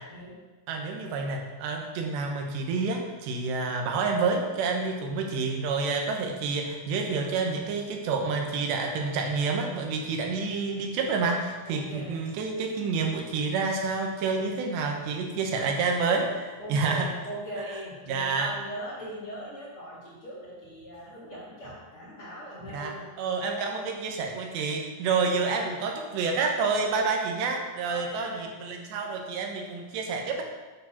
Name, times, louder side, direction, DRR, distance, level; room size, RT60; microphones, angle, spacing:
voice 1, 0.7-17.1 18.1-18.5 22.7-30.4, right 4 dB, 85° right, 2 dB, 3.3 m, -28 dB
voice 2, 11.6-12.2 16.6-23.1 27.8-28.5, equal, 40° left, -5 dB, 2.2 m, -40 dB
9.4 x 6.4 x 5.9 m, 1.3 s
omnidirectional pair, 5.0 m